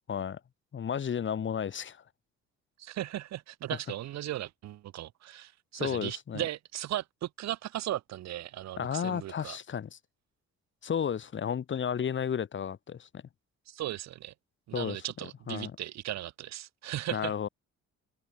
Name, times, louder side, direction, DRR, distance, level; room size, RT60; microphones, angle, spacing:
voice 1, 0.1-0.4 0.7-2.0 5.7-6.4 8.8-10.0 10.8-13.2 14.7-15.0 15.5-15.7 17.1-17.5, left 8 dB, 40° left, 1.1 m, -33 dB
voice 2, 2.8-9.6 13.7-14.3 14.7-17.3, right 13 dB, 65° right, 0.6 m, -37 dB
cardioid pair, 90°, 30 cm